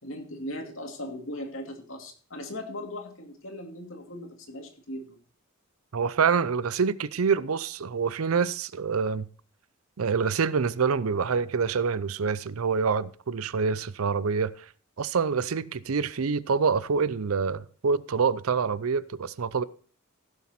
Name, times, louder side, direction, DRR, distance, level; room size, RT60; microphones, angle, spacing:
voice 1, 0.0-5.2, left 1 dB, 65° left, 2.6 m, -38 dB
voice 2, 5.9-9.3 10.0-14.7 15.0-19.6, right 5 dB, 85° right, 0.6 m, -26 dB
16.0 x 7.3 x 4.4 m
head